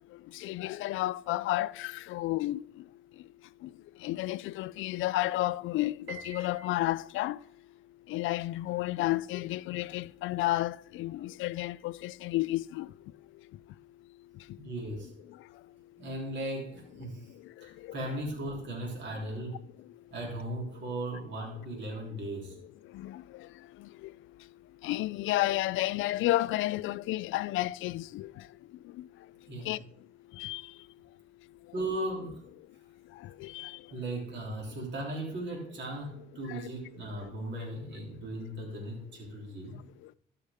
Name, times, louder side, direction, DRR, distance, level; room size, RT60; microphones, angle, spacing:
voice 1, 0.3-2.8 3.6-3.7 4.0-7.4 8.1-12.9 14.3-14.4 15.3-15.4 17.4-18.0 22.9-23.5 23.8-24.1 24.8-28.5 28.8-29.1 29.6-29.8 30.3-30.7 33.1-33.8 36.5-36.7 37.2-37.3, left 16 dB, 85° left, 0.4 m, -32 dB
Piano, 6.1-7.4, right 3 dB, 90° right, 1.9 m, -47 dB
voice 2, 14.6-15.1 16.0-17.3 17.6-19.6 20.1-22.5 29.5-29.8 31.7-32.5 33.9-39.8, right 1 dB, 65° right, 3.3 m, -37 dB
13.5 x 5.6 x 3.5 m
cardioid pair, 90°, 20 cm